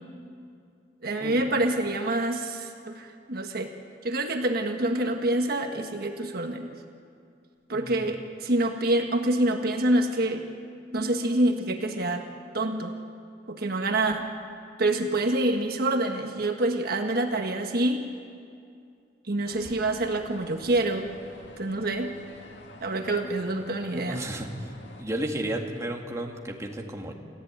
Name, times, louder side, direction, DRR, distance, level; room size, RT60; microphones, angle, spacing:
voice 1, 1.0-3.7 4.0-6.7 7.7-10.4 10.9-12.2 12.5-12.9 13.5-14.3 14.8-18.0 19.3-21.1 21.6-22.1 22.8-24.2, right 1 dB, 60° right, 4 dB, 1.5 m, -26 dB
sound 1, 19.4-25.0, left 1 dB, 85° left, 2.3 m, -48 dB
voice 2, 23.9-24.7 25.0-27.1, right 1 dB, 15° right, 1 dB, 2.0 m, -33 dB
28.5 x 15.0 x 8.9 m, 2.4 s
head